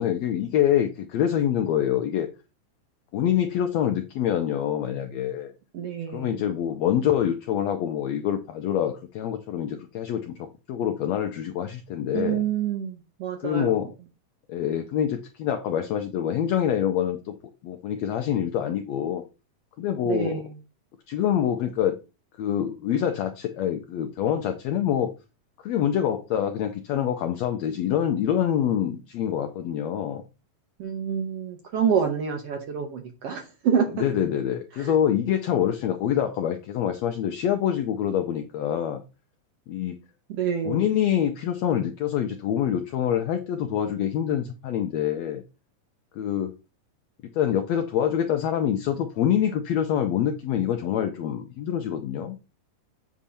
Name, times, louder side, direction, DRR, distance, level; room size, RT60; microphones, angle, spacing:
voice 1, 0.0-2.3 3.1-5.5 6.1-12.4 13.4-13.9 14.5-17.4 17.6-19.2 19.8-20.4 21.1-22.0 22.4-25.1 25.6-30.2 33.9-39.0 39.7-40.0 40.6-45.4 46.1-46.5 47.3-52.4, left 10 dB, 80° left, 7 dB, 1.5 m, -26 dB
voice 2, 5.7-6.4 12.1-13.7 20.0-20.4 30.8-33.9 34.8-34.9 40.3-40.8, right 7 dB, 65° right, 4 dB, 1.6 m, -27 dB
8.4 x 3.6 x 5.6 m, 0.30 s
omnidirectional pair, 3.8 m